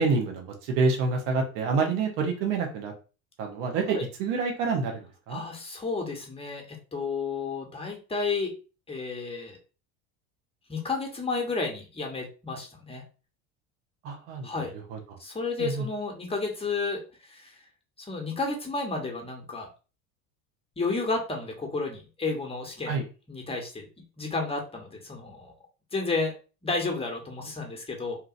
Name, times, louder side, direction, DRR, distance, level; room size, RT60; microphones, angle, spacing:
voice 1, 0.0-2.9 3.4-5.4 14.0-14.5 14.9-15.0 15.6-15.9 22.9-23.0, right 4 dB, 70° right, 3 dB, 1.0 m, -27 dB
voice 2, 5.3-6.6 6.9-8.5 8.9-9.6 10.7-13.0 14.4-14.7 15.2-17.5 18.0-19.7 20.8-22.9 23.3-23.9 24.2-25.5 25.9-26.3 26.6-28.2, left 3 dB, 15° left, 1 dB, 1.0 m, -31 dB
2.9 x 2.5 x 2.5 m, 0.34 s
supercardioid pair, 90°, 42 cm